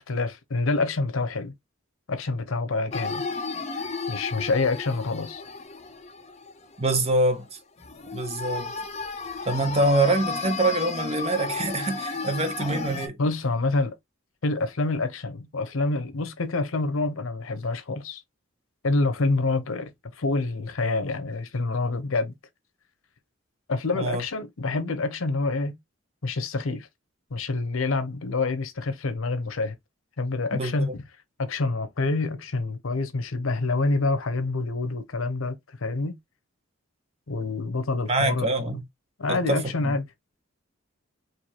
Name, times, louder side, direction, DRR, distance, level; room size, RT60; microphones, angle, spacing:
voice 1, 0.0-1.5 2.1-3.2 3.7-5.4 13.2-13.9 14.4-18.2 18.8-19.9 20.2-22.3 23.7-25.8 26.2-26.9 27.3-29.7 30.2-31.0 31.4-36.2 37.3-38.8 39.2-40.0, left 3 dB, 85° left, 0.8 m, -27 dB
sound 1, 2.9-7.0 7.3-7.4 7.8-13.1, left 4 dB, 35° left, 0.6 m, -33 dB
voice 2, 6.8-7.4 8.1-8.7 9.5-13.2 23.9-24.2 30.5-30.7 38.1-38.8 39.3-39.9, right 2 dB, 30° right, 0.8 m, -25 dB
4.6 x 2.6 x 2.8 m
head